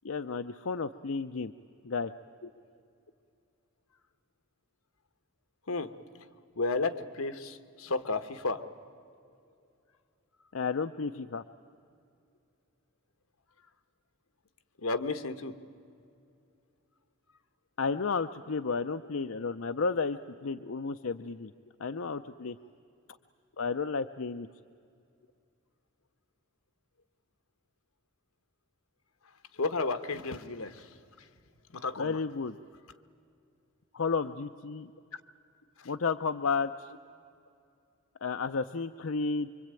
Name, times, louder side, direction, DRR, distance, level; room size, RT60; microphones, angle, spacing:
voice 1, 0.0-1.5 1.8-2.1 10.5-11.4 17.8-21.5 21.8-22.6 23.6-24.5 32.0-32.6 33.9-34.9 35.9-36.9 38.2-39.5, left 4 dB, 70° left, 8 dB, 0.6 m, -32 dB
voice 2, 6.6-8.6 14.8-15.5 29.5-30.9 31.7-32.2 35.8-35.9, left 3 dB, 85° left, 10 dB, 1.2 m, -32 dB
25.5 x 24.5 x 9.0 m, 2.5 s
head